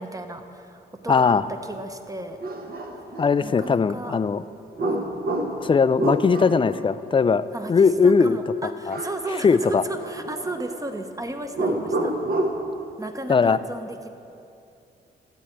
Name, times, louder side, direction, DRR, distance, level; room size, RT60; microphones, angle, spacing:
voice 1, 0.0-1.4 1.7-2.4 3.4-4.2 4.9-5.1 7.5-7.7 8.0-12.1 13.0-14.1, right 2 dB, 15° right, 7 dB, 1.0 m, -34 dB
voice 2, 1.1-1.4 3.2-4.4 5.6-8.4 8.9-9.0 9.4-9.8 13.3-13.6, left 5 dB, 25° left, 15 dB, 0.4 m, -19 dB
sound 1, 1.7-1.8 2.4-3.8 4.8-6.7 8.9-9.3 9.6-10.8 11.5-12.7, right 1 dB, 45° right, 1.2 m, -28 dB
13.0 x 8.0 x 4.6 m, 2.6 s
supercardioid pair, 55°, 20 cm